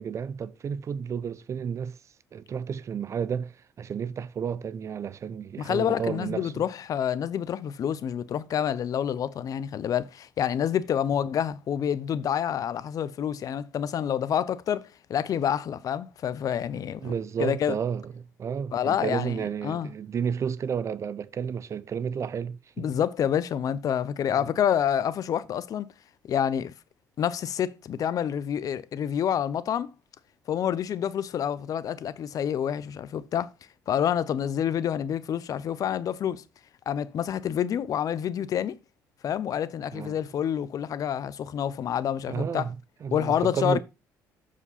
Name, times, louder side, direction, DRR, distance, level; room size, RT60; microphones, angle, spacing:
voice 1, 0.0-2.0 2.3-6.5 17.0-22.9 24.3-24.4 39.9-40.2 42.3-42.8 43.0-43.8, right 7 dB, 45° right, 0.5 m, -31 dB
voice 2, 5.6-17.1 17.4-17.8 18.7-19.9 22.8-25.9 26.3-26.7 27.2-29.9 30.5-33.5 33.9-36.4 36.9-38.8 39.2-42.7 43.1-43.8, left 9 dB, 55° left, 0.6 m, -28 dB
6.8 x 4.9 x 4.1 m
supercardioid pair, 80°, 7 cm